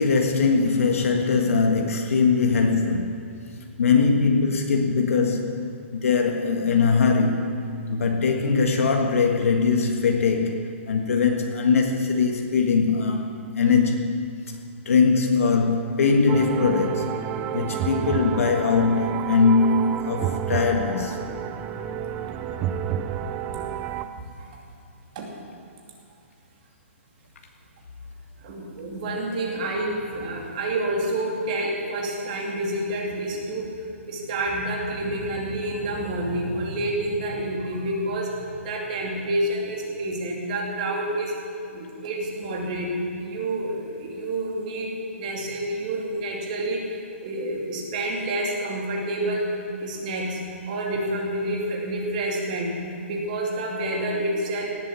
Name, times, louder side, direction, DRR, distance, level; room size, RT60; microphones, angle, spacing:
voice 1, 0.0-3.2 3.8-7.5 7.9-14.2 14.9-17.1 17.5-21.2, left 4 dB, 80° left, 3 dB, 1.6 m, -21 dB
sound 1, 16.3-24.0, right 9 dB, 15° right, 0.3 m, -30 dB
voice 2, 28.4-33.7 34.1-41.4 41.7-42.9 43.2-49.5 49.8-50.4 50.7-52.8 53.0-54.7, right 1 dB, 35° right, -1 dB, 2.6 m, -28 dB
17.5 x 7.7 x 8.3 m, 2.5 s
hypercardioid pair, 170°, 7 cm